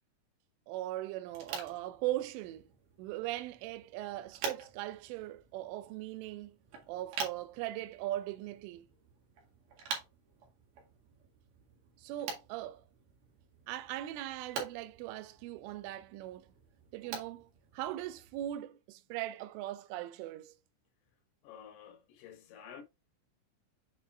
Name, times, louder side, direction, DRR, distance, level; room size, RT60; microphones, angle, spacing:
voice 1, 0.7-2.6 3.0-6.6 6.9-8.9 12.0-12.8 13.7-16.5 16.9-20.5, right 14 dB, 85° right, 3.2 m, -39 dB
sound 1, 1.3-18.5, right 5 dB, 60° right, 3.4 m, -46 dB
voice 2, 21.4-22.8, left 8 dB, 75° left, 3.4 m, -51 dB
8.3 x 5.0 x 2.3 m
omnidirectional pair, 5.6 m